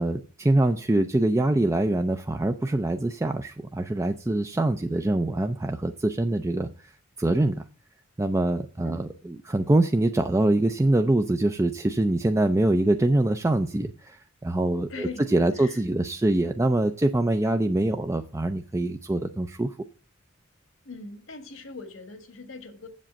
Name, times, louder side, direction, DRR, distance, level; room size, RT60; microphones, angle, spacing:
voice 1, 0.0-6.9 7.2-7.6 8.2-19.8, right 1 dB, 15° right, 0.4 m, -24 dB
voice 2, 14.9-15.2 15.5-15.8 20.8-22.9, left 3 dB, 80° left, 1.7 m, -40 dB
7.8 x 7.5 x 5.8 m
head